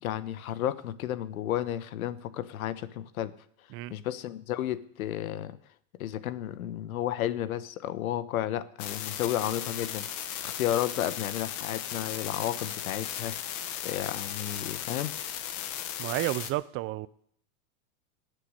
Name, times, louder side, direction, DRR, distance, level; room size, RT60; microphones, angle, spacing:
voice 1, 0.0-3.3 3.9-5.6 6.0-13.3 13.8-15.1, left 12 dB, 85° left, 1.1 m, -32 dB
sound 1, 8.8-16.5, left 10 dB, 45° left, 1.4 m, -36 dB
voice 2, 16.0-17.1, right 17 dB, 30° right, 0.5 m, -31 dB
16.0 x 6.8 x 9.7 m
supercardioid pair, 135°, 41 cm